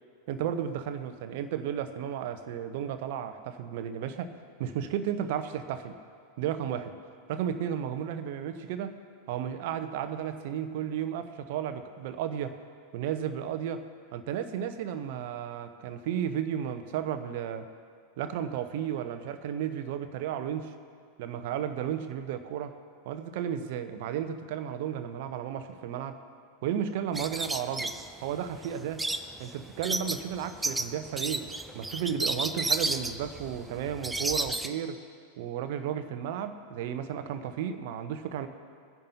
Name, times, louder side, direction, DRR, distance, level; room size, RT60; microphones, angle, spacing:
voice 1, 0.3-6.0 6.4-7.0 7.3-9.0 9.3-12.6 12.9-13.9 14.1-17.7 18.2-20.7 21.2-22.7 23.0-26.2 26.6-27.9 28.2-29.1 29.4-31.5 31.7-35.0 35.4-38.5, right 9 dB, 50° right, 10 dB, 0.8 m, -33 dB
sound 1, 27.1-34.7, right 2 dB, 10° right, 0.5 m, -32 dB
22.0 x 10.5 x 2.8 m, 2.2 s
figure-of-eight pair, 90°, 0 cm